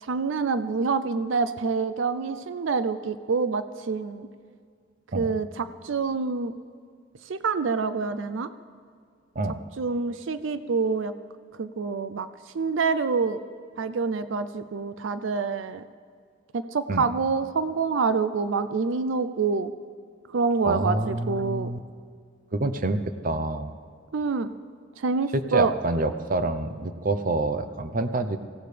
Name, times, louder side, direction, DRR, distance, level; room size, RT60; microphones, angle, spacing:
voice 1, 0.0-4.3 5.1-6.5 7.3-8.5 9.8-11.1 11.6-12.3 12.5-13.4 13.8-15.8 16.5-19.7 20.3-21.7 24.1-24.5 25.0-25.7, right 4 dB, 85° right, 12 dB, 0.5 m, -26 dB
voice 2, 20.6-21.8 22.5-23.7 25.3-28.4, right 2 dB, 45° right, 11 dB, 0.7 m, -27 dB
24.0 x 16.5 x 3.4 m, 2.1 s
head